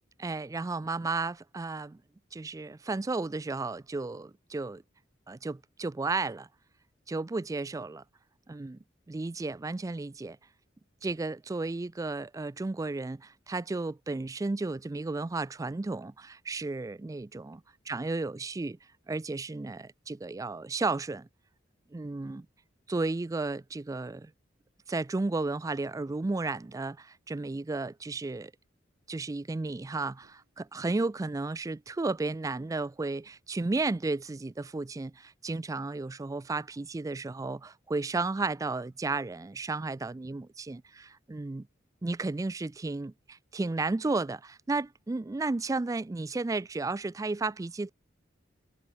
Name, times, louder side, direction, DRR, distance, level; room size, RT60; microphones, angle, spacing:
voice 1, 0.2-2.0 2.3-4.8 5.3-6.5 7.1-8.0 8.5-8.8 9.1-10.4 11.0-17.6 17.9-18.8 19.1-21.3 21.9-22.5 22.9-24.3 24.9-28.5 29.1-41.7 42.0-47.9, right 3 dB, 15° right, 0.3 m, -33 dB
sound 1, 30.1-31.4, right 1 dB, 55° right, 4.1 m, -73 dB
head